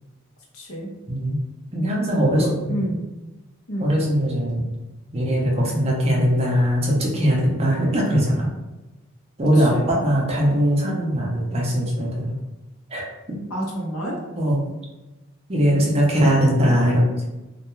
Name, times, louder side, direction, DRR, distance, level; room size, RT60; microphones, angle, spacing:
voice 1, 0.5-0.9 2.4-3.0 3.7-3.9 9.6-10.0 13.5-14.2, equal, 75° left, -2 dB, 0.7 m, -29 dB
voice 2, 1.1-1.4 1.7-2.7 3.8-4.6 5.1-8.5 9.4-12.3 12.9-13.4 14.4-14.6 15.5-17.0, equal, 30° right, -3 dB, 0.5 m, -20 dB
2.2 x 2.2 x 3.0 m, 1.1 s
head